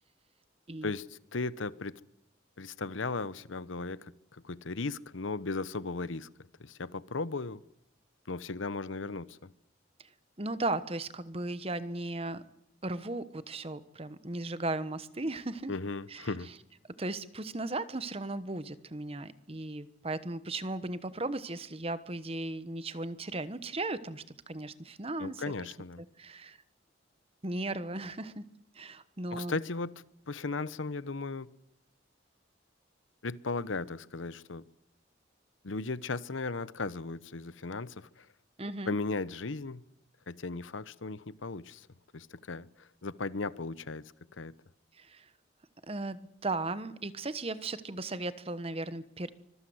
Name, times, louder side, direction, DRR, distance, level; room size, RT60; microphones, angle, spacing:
voice 1, 0.8-2.0 2.6-6.3 6.6-7.6 8.3-9.5 15.7-16.5 25.2-26.0 29.3-29.9 30.3-31.5 33.2-34.6 35.6-38.3 38.9-39.9 40.3-41.9 42.1-44.5, left 3 dB, 90° left, 0.9 m, -36 dB
voice 2, 10.4-12.4 12.8-15.7 16.1-16.3 17.0-25.5 26.2-26.6 27.4-28.4 28.7-29.6 38.6-38.9 45.0-45.3 45.9-49.3, right 2 dB, 30° right, 1.1 m, -36 dB
24.5 x 22.5 x 7.9 m
head